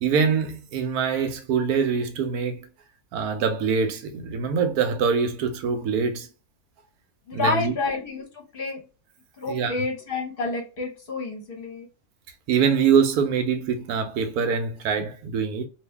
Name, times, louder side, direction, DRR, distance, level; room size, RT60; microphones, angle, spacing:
voice 1, 0.0-2.6 3.1-6.3 7.3-7.7 9.5-9.7 12.5-15.7, right 6 dB, 85° right, 1.2 m, -24 dB
voice 2, 7.3-8.8 9.4-11.9, left 3 dB, 45° left, 1.0 m, -29 dB
2.7 x 2.6 x 3.3 m
omnidirectional pair, 1.6 m